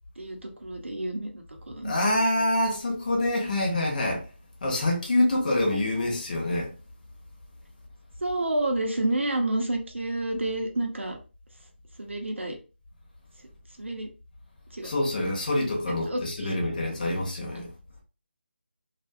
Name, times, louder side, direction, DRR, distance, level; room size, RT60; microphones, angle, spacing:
voice 1, 0.2-1.9 8.2-11.2 12.0-12.6 13.8-14.1 14.7-14.9 16.1-16.5, right 1 dB, 80° right, 0.8 m, -29 dB
voice 2, 1.8-4.3 4.6-6.7 14.8-17.7, left 1 dB, 45° left, 0.9 m, -26 dB
2.5 x 2.3 x 2.5 m
figure-of-eight pair, 160°, 6 cm